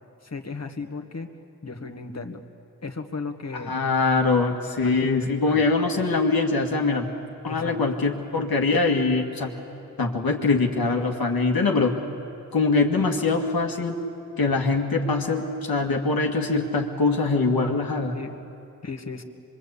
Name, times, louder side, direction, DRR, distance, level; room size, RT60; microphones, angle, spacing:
voice 1, 0.2-1.3 1.6-2.4 2.8-3.8 4.8-5.0 5.5-5.6 7.5-7.8 18.1-18.3 18.8-19.2, left 4 dB, 45° left, 5 dB, 1.8 m, -35 dB
voice 2, 3.5-7.1 7.4-9.5 10.0-11.9 12.5-14.0 14.4-18.1, left 3 dB, 90° left, 2 dB, 2.1 m, -23 dB
25.0 x 23.0 x 8.4 m, 2.7 s
wide cardioid pair, 60°, 35 cm